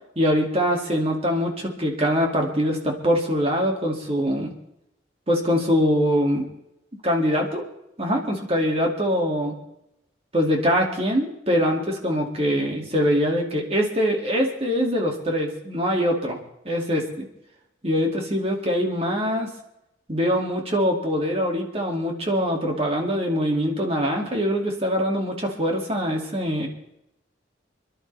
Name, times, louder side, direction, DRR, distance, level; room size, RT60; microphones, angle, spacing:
voice 1, 0.2-4.5 5.3-6.5 7.0-7.6 8.0-9.5 10.3-16.4 16.6-17.3 17.8-19.5 20.1-26.7, equal, 30° right, 1 dB, 2.5 m, -23 dB
27.0 x 11.5 x 3.5 m, 0.84 s
head